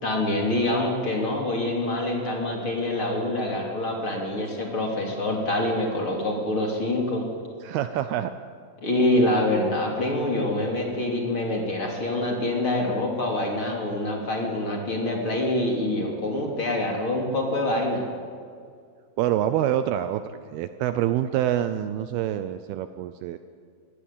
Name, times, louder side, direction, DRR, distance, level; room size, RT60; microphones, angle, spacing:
voice 1, 0.0-7.2 8.8-18.0, left 1 dB, 35° left, 0 dB, 3.3 m, -25 dB
voice 2, 7.6-8.3 19.2-20.2 20.5-23.4, right 11 dB, 80° right, 10 dB, 2.4 m, -26 dB
22.5 x 16.5 x 8.6 m, 2.2 s
omnidirectional pair, 4.9 m